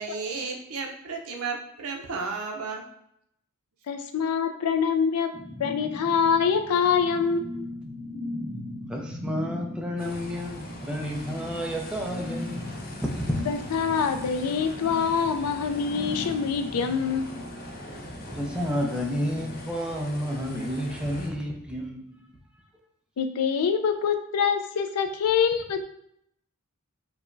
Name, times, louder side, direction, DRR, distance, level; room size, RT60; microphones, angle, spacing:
voice 1, 0.0-2.8, right 4 dB, 70° right, 1 dB, 0.6 m, -33 dB
voice 2, 3.9-5.3 5.6-7.7 13.5-17.4 23.2-25.8, left 6 dB, 85° left, 8 dB, 0.4 m, -25 dB
sound 1, 5.3-19.7, left 1 dB, 45° right, 1.1 m, -39 dB
voice 3, 8.9-12.9 13.2-13.4 18.3-22.3, equal, 5° right, -1 dB, 0.5 m, -31 dB
sound 2, 10.0-21.3, left 1 dB, 40° left, 0.6 m, -42 dB
4.8 x 2.1 x 2.5 m, 0.74 s
head